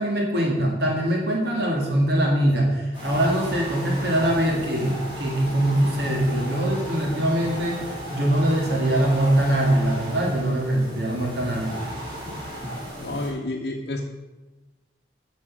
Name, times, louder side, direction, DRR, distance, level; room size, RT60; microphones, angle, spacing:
voice 1, 0.0-7.8 8.1-11.8, right 1 dB, 65° right, -1 dB, 2.0 m, -22 dB
sound 1, 2.9-13.3, equal, 25° right, 2.9 m, -35 dB
voice 2, 13.0-14.1, left 2 dB, 65° left, 0 dB, 0.8 m, -30 dB
8.6 x 6.3 x 6.2 m, 1.1 s
head